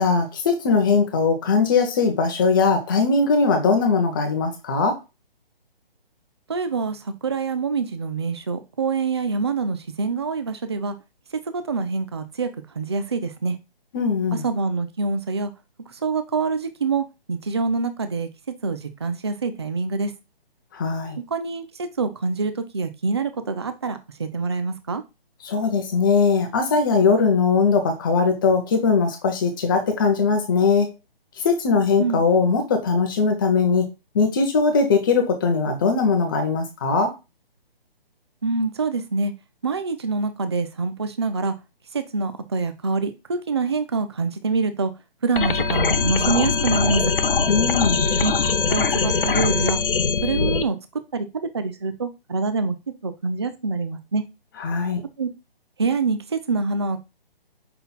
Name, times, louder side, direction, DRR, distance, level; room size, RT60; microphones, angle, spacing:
voice 1, 0.0-5.0 13.9-14.4 20.7-21.2 25.4-30.9 31.4-33.9 34.1-37.1 47.5-48.1 54.6-55.0, left 4 dB, 20° left, 0.8 m, -20 dB
voice 2, 6.5-10.9 11.5-12.5 12.8-13.6 14.3-15.5 16.0-18.3 18.6-20.1 21.3-25.0 32.0-32.2 38.4-39.3 39.6-41.5 41.9-44.9 45.2-47.0 48.2-48.3 48.7-49.8 50.2-50.8 51.1-52.8 53.0-54.2 55.2-55.3 55.8-57.0, right 4 dB, 30° right, 0.4 m, -25 dB
sound 1, 45.4-50.6, left 5 dB, 65° left, 0.6 m, -21 dB
5.7 x 3.9 x 2.3 m
figure-of-eight pair, 140°, 30 cm